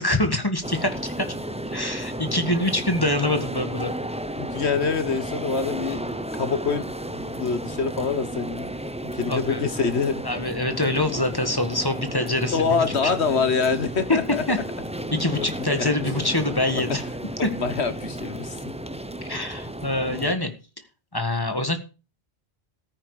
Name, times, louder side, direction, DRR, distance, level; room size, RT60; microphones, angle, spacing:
voice 1, 0.0-1.3 1.7-3.9 9.3-9.6 10.2-13.1 14.1-14.2 14.5-14.6 15.1-17.0 17.4-17.5 19.3-20.5 21.1-21.8, left 1 dB, 20° left, 8 dB, 1.8 m, -25 dB
sound 1, 0.6-20.3, right 1 dB, 5° right, 0.8 m, -33 dB
voice 2, 4.4-6.1 6.4-6.8 7.1-8.7 9.0-10.2 12.5-14.4 15.4-15.5 15.8-15.9 17.4-18.6, left 5 dB, 80° left, 11 dB, 1.8 m, -25 dB
13.5 x 9.8 x 5.0 m, 0.33 s
omnidirectional pair, 1.1 m